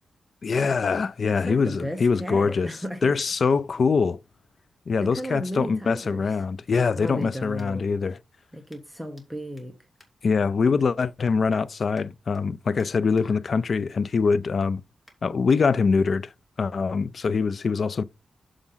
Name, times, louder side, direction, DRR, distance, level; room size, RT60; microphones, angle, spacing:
voice 1, 0.4-2.7 3.0-4.2 4.9-8.2 10.2-14.8 15.2-16.3 16.6-18.0, left 5 dB, 50° left, 0.4 m, -23 dB
voice 2, 1.3-3.1 5.0-6.4 6.9-7.9 8.5-9.7, equal, 5° right, 0.9 m, -35 dB
sound 1, 6.8-8.0 8.7-9.3 9.5-10.9 11.2-11.6 11.9-13.3 13.7-14.0 14.3-15.6 16.2-16.3, left 1 dB, 15° left, 2.7 m, -60 dB
7.1 x 5.0 x 5.5 m
wide cardioid pair, 120°, 0 cm